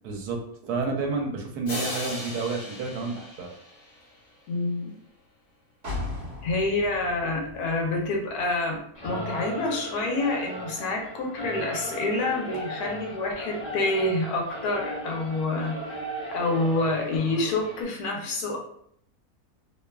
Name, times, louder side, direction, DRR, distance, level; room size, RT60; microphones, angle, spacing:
voice 1, 0.0-3.5, right 4 dB, 80° right, 2 dB, 1.1 m, -30 dB
sound 1, 1.7-4.3, left 1 dB, 55° left, 1.0 m, -37 dB
voice 2, 4.5-4.9 6.4-16.0 16.3-18.6, left 2 dB, 80° left, 1 dB, 1.2 m, -27 dB
sound 2, 5.8-9.6 9.9-10.0, left 2 dB, 45° right, 1.0 m, -38 dB
Singing / Musical instrument, 8.9-17.8, right 1 dB, 40° left, 0.6 m, -37 dB
2.9 x 2.2 x 2.2 m, 0.67 s
omnidirectional pair, 1.7 m